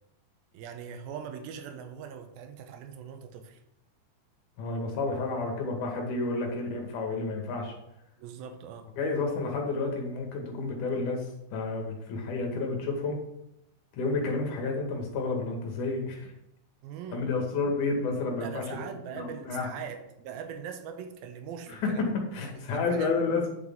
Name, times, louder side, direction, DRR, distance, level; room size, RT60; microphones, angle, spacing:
voice 1, 0.5-3.6 6.5-6.6 8.2-8.9 16.8-17.7 18.4-22.1 22.6-23.2, right 7 dB, 80° right, 6 dB, 2.6 m, -41 dB
voice 2, 4.6-7.7 9.0-13.2 14.0-16.3 17.1-18.6 19.1-19.7 21.7-23.5, left 3 dB, 65° left, 1 dB, 3.0 m, -30 dB
9.0 x 6.5 x 3.6 m, 0.83 s
omnidirectional pair, 4.2 m